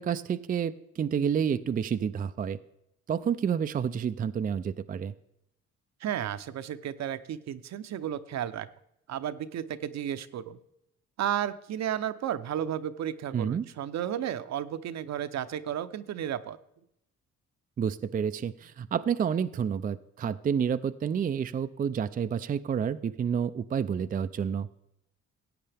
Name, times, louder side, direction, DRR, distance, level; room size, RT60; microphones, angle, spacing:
voice 1, 0.0-2.6 3.1-5.1 13.3-13.6 17.8-24.7, right 7 dB, 30° right, 11 dB, 0.4 m, -29 dB
voice 2, 6.0-8.7 9.1-10.6 11.2-16.6, right 10 dB, 60° right, 12 dB, 0.7 m, -33 dB
16.0 x 8.5 x 3.4 m, 0.79 s
cardioid pair, 90°, 30 cm